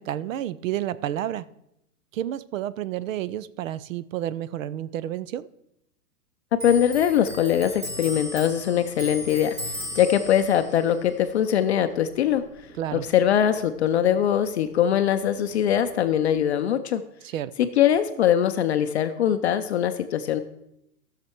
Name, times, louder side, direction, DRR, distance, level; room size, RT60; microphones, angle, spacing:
voice 1, 0.0-1.5 2.1-5.5 12.8-13.1 17.2-17.5, right 12 dB, 55° right, 18 dB, 0.5 m, -30 dB
voice 2, 6.6-9.6 9.9-12.4 12.9-17.0 17.8-20.4, left 10 dB, 45° left, 9 dB, 0.5 m, -22 dB
Clock, 6.6-13.6 13.9-15.2 15.5-16.3, left 1 dB, 25° right, 1.9 m, -38 dB
13.5 x 6.7 x 4.4 m, 0.81 s
supercardioid pair, 165°, 47 cm